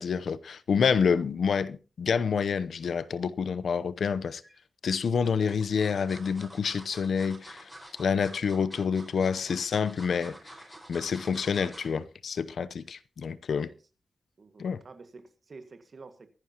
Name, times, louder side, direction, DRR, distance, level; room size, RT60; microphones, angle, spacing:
voice 1, 0.0-4.4 4.8-7.7 8.0-10.4 10.9-13.7 14.6-14.8, left 6 dB, 80° left, 0.7 m, -28 dB
sound 1, 4.4-4.5 5.2-12.0 12.4-12.6 12.9-13.0, right 1 dB, 5° right, 5.0 m, -49 dB
voice 2, 14.4-16.3, right 4 dB, 45° right, 1.7 m, -49 dB
23.5 x 10.5 x 2.9 m
wide cardioid pair, 170°, 0 cm